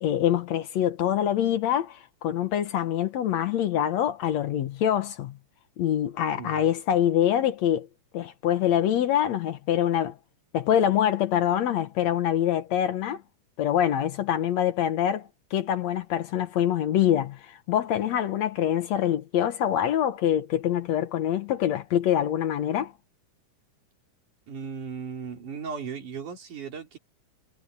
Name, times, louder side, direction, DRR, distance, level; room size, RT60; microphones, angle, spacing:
voice 1, 0.0-5.4 5.8-7.9 8.1-10.2 10.5-13.2 13.6-22.9, left 10 dB, 65° left, 2.1 m, -25 dB
voice 2, 6.3-6.7 24.5-27.0, right 6 dB, 75° right, 5.5 m, -37 dB
omnidirectional pair, 3.6 m